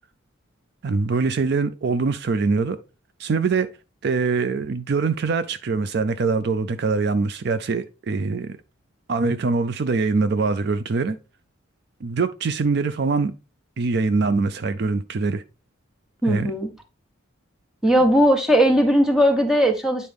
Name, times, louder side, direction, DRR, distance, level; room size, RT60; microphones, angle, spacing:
voice 1, 0.8-2.8 3.2-3.7 4.0-8.6 9.1-11.2 12.0-13.3 13.8-15.4 16.2-16.5, right 4 dB, 50° right, 0.4 m, -23 dB
voice 2, 16.2-16.7 17.8-20.1, equal, 5° right, 1.2 m, -18 dB
9.5 x 4.1 x 3.5 m
head